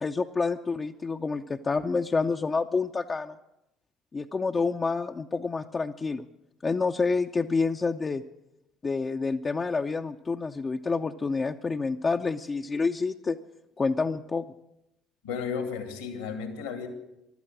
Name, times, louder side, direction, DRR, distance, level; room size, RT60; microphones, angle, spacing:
voice 1, 0.0-3.4 4.1-6.2 6.6-8.2 8.8-13.4 13.8-14.5, left 4 dB, 30° left, 3 dB, 0.6 m, -28 dB
voice 2, 15.2-16.9, left 6 dB, 80° left, 7 dB, 2.2 m, -33 dB
15.0 x 12.0 x 7.4 m, 0.86 s
figure-of-eight pair, 55°, 0 cm